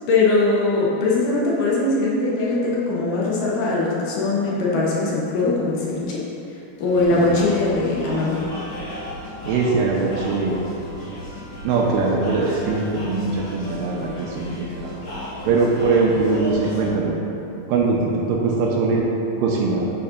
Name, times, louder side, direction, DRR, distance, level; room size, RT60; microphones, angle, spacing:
voice 1, 0.1-6.3 6.8-8.4, left 3 dB, 70° left, -5 dB, 2.2 m, -21 dB
sound 1, 6.8-16.9, left 1 dB, 45° left, 1.7 m, -35 dB
voice 2, 7.1-7.4 9.5-10.6 11.6-14.9 15.5-17.1 17.7-19.1 19.4-19.9, right 3 dB, 80° right, -2 dB, 2.2 m, -21 dB
9.7 x 6.3 x 2.5 m, 2.9 s
omnidirectional pair, 4.2 m